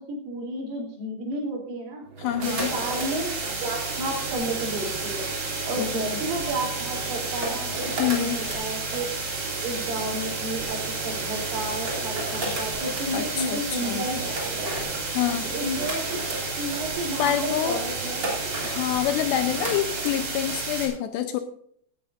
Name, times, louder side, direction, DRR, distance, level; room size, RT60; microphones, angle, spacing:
voice 1, 0.0-2.1 2.4-9.1 9.6-14.8 15.5-18.2, right 1 dB, 85° right, 0 dB, 5.9 m, -32 dB
sound 1, 2.1-20.6, right 2 dB, 30° right, 3.1 m, -36 dB
voice 2, 2.2-2.7 5.8-6.2 8.0-8.4 13.1-14.0 15.1-15.5 17.2-17.8 18.6-21.4, left 11 dB, 80° left, 8 dB, 2.6 m, -27 dB
sound 2, 2.4-20.9, right 3 dB, 50° right, 5.1 m, -32 dB
17.0 x 11.5 x 2.6 m, 0.62 s
omnidirectional pair, 5.6 m